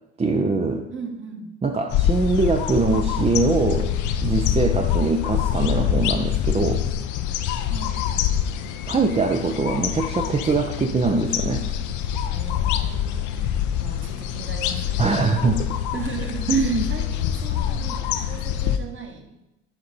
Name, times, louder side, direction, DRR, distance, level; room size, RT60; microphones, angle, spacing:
voice 1, 0.2-0.9 1.6-3.9 4.2-6.8 8.9-11.7 15.0-15.8 16.5-16.9, right 3 dB, 15° right, 4 dB, 0.7 m, -22 dB
voice 2, 0.9-1.5 7.7-8.0 12.2-15.1 15.9-19.3, right 5 dB, 35° right, 3 dB, 1.5 m, -38 dB
sound 1, 1.9-18.8, left 10 dB, 55° left, 0.7 m, -25 dB
10.0 x 5.3 x 4.1 m, 0.93 s
figure-of-eight pair, 55°, 37 cm